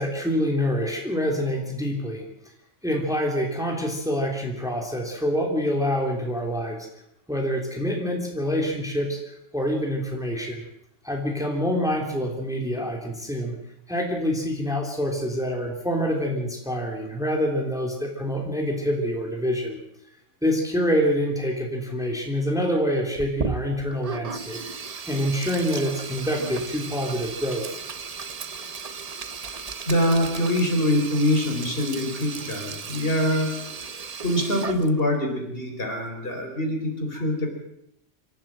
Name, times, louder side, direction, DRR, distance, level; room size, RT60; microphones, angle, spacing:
voice 1, 0.0-2.3 2.8-6.9 7.3-9.2 9.5-10.6 11.0-13.5 13.9-19.8 20.4-24.6 25.0-27.8, equal, 5° right, 0 dB, 3.2 m, -26 dB
Sink (filling or washing), 23.2-35.2, right 5 dB, 35° right, 0.8 m, -35 dB
voice 2, 29.9-33.5 34.2-37.5, left 1 dB, 50° left, 2 dB, 4.5 m, -24 dB
26.0 x 13.5 x 7.6 m, 0.80 s
omnidirectional pair, 1.2 m